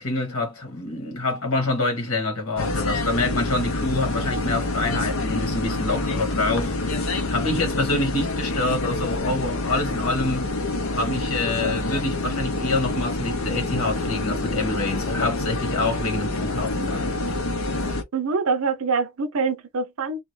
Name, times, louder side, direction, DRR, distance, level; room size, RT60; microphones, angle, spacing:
voice 1, 0.0-10.5 10.9-17.1, left 2 dB, 85° left, 1.5 m, -26 dB
sound 1, 2.6-18.0, left 2 dB, 70° left, 0.8 m, -27 dB
voice 2, 18.1-20.2, right 4 dB, 80° right, 0.6 m, -25 dB
2.9 x 2.4 x 3.1 m
head